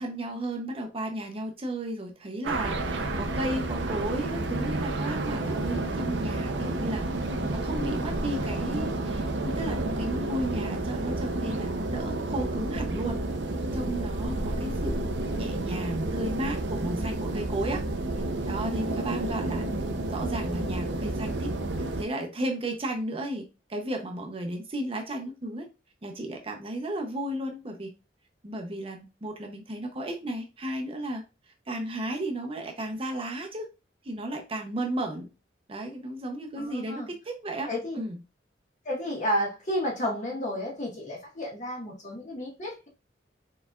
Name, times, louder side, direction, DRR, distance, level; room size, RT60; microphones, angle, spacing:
voice 1, 0.0-7.1 7.3-13.2 13.7-17.8 18.1-19.7 20.1-21.5 21.8-25.7 26.0-27.9 28.4-31.2 31.7-33.7 34.0-35.3 35.7-37.7 37.9-38.2, right 1 dB, 30° right, 0.7 m, -34 dB
sound 1, 2.4-22.0, right 2 dB, 80° right, 0.7 m, -30 dB
voice 2, 36.6-37.1 37.7-38.0 38.8-42.9, equal, 45° left, 1.5 m, -31 dB
4.3 x 4.1 x 2.4 m
head